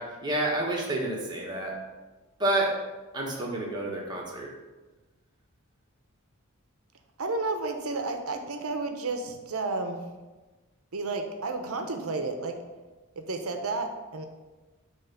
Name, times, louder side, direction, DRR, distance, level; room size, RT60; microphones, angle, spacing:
voice 1, 0.0-1.7 2.4-2.7 3.1-4.5, right 1 dB, 20° right, -2 dB, 1.2 m, -29 dB
voice 2, 7.2-10.0 10.9-12.6 13.2-14.3, right 3 dB, 80° right, 5 dB, 0.8 m, -32 dB
7.3 x 3.1 x 5.8 m, 1.2 s
head